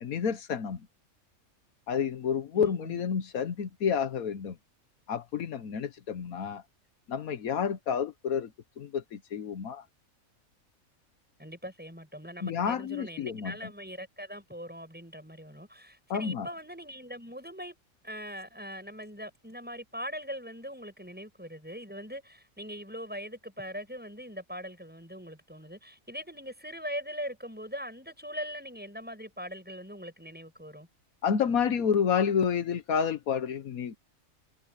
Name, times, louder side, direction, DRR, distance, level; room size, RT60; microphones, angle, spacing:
voice 1, 0.0-0.9 1.9-4.5 5.1-6.6 7.1-8.5 8.8-9.8 12.4-13.7 16.1-16.5 31.2-34.0, left 7 dB, 80° left, 1.5 m, -29 dB
voice 2, 2.5-3.0 11.4-17.8 18.0-30.9, equal, 5° right, 7.6 m, -41 dB
omnidirectional pair, 1.5 m